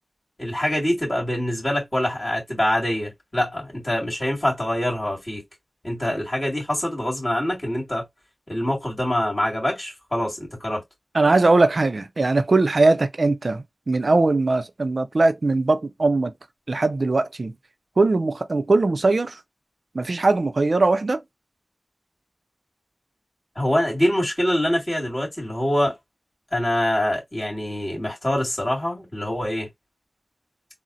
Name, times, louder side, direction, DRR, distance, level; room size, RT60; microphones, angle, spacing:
voice 1, 0.4-5.4 5.8-8.1 8.5-10.8 23.6-26.0 26.5-29.7, left 1 dB, 40° left, 2.1 m, -24 dB
voice 2, 11.1-16.3 16.7-17.5 18.0-19.4 19.9-21.2, right 3 dB, 70° right, 0.4 m, -20 dB
3.9 x 2.0 x 2.6 m
wide cardioid pair, 45°, 0 cm